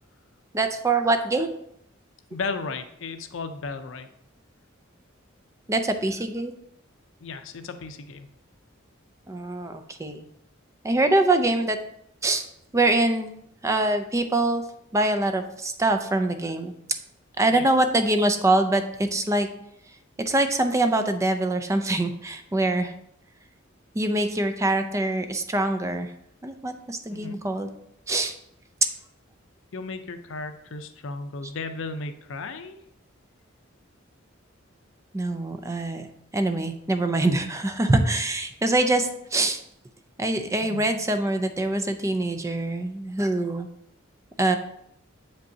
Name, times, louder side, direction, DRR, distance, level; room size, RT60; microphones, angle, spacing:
voice 1, 0.5-1.5 5.7-6.5 9.3-10.3 10.8-11.8 12.2-12.5 12.7-13.3 13.6-14.6 14.9-17.0 17.4-19.5 20.2-22.9 23.9-26.1 26.4-27.7 28.1-28.3 35.1-36.0 36.3-39.6 40.2-43.7 44.4-44.6, right 2 dB, 15° right, 7 dB, 0.4 m, -24 dB
voice 2, 2.3-4.1 7.2-8.3 17.5-17.7 27.1-27.4 29.7-32.8 40.6-40.9, left 3 dB, 70° left, 8 dB, 0.6 m, -35 dB
7.4 x 5.4 x 2.7 m, 0.75 s
head